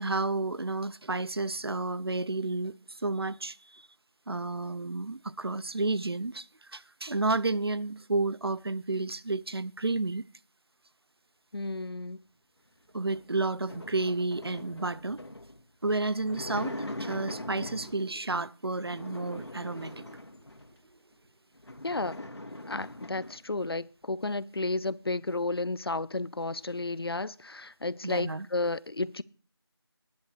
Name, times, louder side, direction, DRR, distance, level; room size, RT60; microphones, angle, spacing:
voice 1, 0.0-2.7 3.0-3.8 4.3-6.5 6.7-10.2 12.9-15.2 15.8-20.2 28.0-28.5, right 3 dB, 65° right, 0.6 m, -31 dB
voice 2, 11.5-12.2 21.8-22.2 22.7-29.2, left 2 dB, 65° left, 0.7 m, -32 dB
sound 1, 13.0-18.1 18.7-20.8 21.2-21.3 21.5-23.4, left 1 dB, 80° left, 2.6 m, -42 dB
20.0 x 10.5 x 3.2 m
figure-of-eight pair, 175°, 14 cm